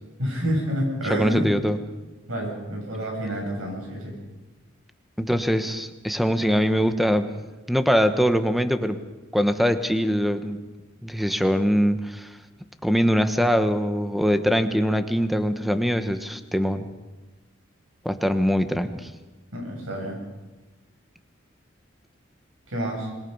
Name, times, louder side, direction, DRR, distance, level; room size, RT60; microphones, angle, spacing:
voice 1, 0.2-1.5 2.3-4.1 19.5-20.2 22.7-23.1, equal, 85° right, 0 dB, 8.0 m, -28 dB
voice 2, 1.1-1.8 5.2-7.3 7.7-9.0 9.3-10.6 11.0-12.3 12.8-16.9 18.0-19.1, equal, ahead, 9 dB, 1.0 m, -22 dB
26.5 x 21.0 x 5.5 m, 1.1 s
head